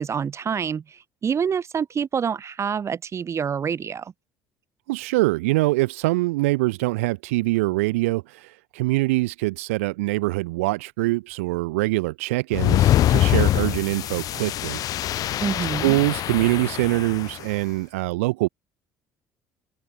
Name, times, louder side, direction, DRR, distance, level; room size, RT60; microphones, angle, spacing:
voice 1, 0.0-4.1 15.4-16.0, right 7 dB, 40° right, 2.0 m, -27 dB
voice 2, 4.9-14.8 15.8-18.5, right 21 dB, 75° right, 0.4 m, -24 dB
sound 1, 12.5-17.4, left 13 dB, 55° left, 0.7 m, -23 dB
open air
figure-of-eight pair, 55°, 8 cm